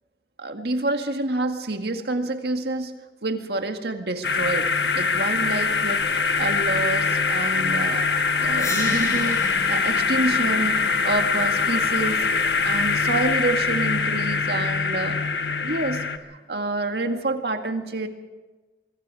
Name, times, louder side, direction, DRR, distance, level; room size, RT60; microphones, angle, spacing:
voice 1, 0.4-2.9 3.2-4.7 4.9-6.0 6.4-8.1 8.4-9.4 9.7-12.2 12.6-15.2 15.6-16.0 16.3-18.1, right 2 dB, 70° right, 5 dB, 1.9 m, -27 dB
sound 1, 4.2-16.2, left 4 dB, 75° left, 1.3 m, -23 dB
sound 2, 8.5-14.6, left 2 dB, 20° left, 5.4 m, -37 dB
24.0 x 23.0 x 4.9 m, 1.2 s
head